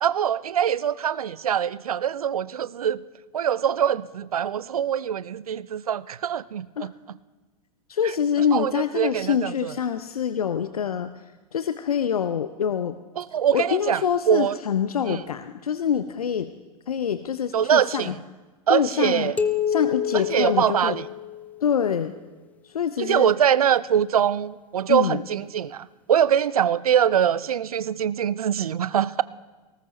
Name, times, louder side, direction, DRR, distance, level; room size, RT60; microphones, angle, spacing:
voice 1, 0.0-3.0 3.3-6.9 8.5-9.7 13.2-14.0 14.3-14.6 15.1-15.2 17.5-18.1 18.7-19.3 20.1-21.1 23.0-29.2, right 9 dB, 65° right, 19 dB, 0.5 m, -23 dB
voice 2, 7.9-11.2 11.5-13.0 13.5-16.5 16.9-18.1 18.7-19.3 19.7-21.0 21.6-22.1 22.6-23.3 24.9-25.2, left 8 dB, 70° left, 11 dB, 0.6 m, -25 dB
sound 1, 19.4-21.8, left 8 dB, 5° left, 0.6 m, -28 dB
19.0 x 18.0 x 3.1 m, 1.2 s
figure-of-eight pair, 95°, 20 cm